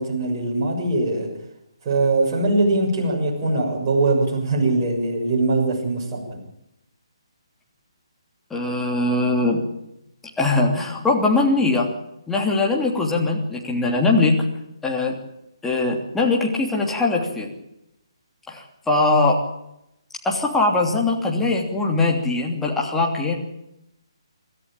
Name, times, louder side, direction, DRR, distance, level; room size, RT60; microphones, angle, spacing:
voice 1, 0.0-1.3 1.8-6.4, right 2 dB, 30° right, -2 dB, 7.0 m, -21 dB
voice 2, 8.5-9.7 10.4-11.9 12.3-14.4 14.8-15.2 15.6-17.5 18.5-19.4 20.2-23.4, left 3 dB, 5° left, -1 dB, 3.0 m, -21 dB
26.0 x 13.5 x 8.9 m, 0.84 s
figure-of-eight pair, 140°, 3 cm